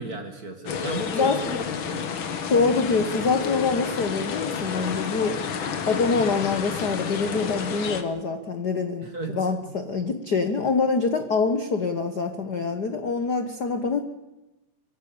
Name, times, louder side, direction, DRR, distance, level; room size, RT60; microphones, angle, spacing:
voice 1, 0.0-2.1 9.0-9.5, right 2 dB, 30° right, 5 dB, 2.1 m, -34 dB
sound 1, 0.7-8.0, left 6 dB, 50° left, 1.7 m, -30 dB
voice 2, 2.5-5.4 5.9-14.0, left 4 dB, 70° left, 7 dB, 0.9 m, -25 dB
24.5 x 16.0 x 8.6 m, 1.0 s
omnidirectional pair, 3.8 m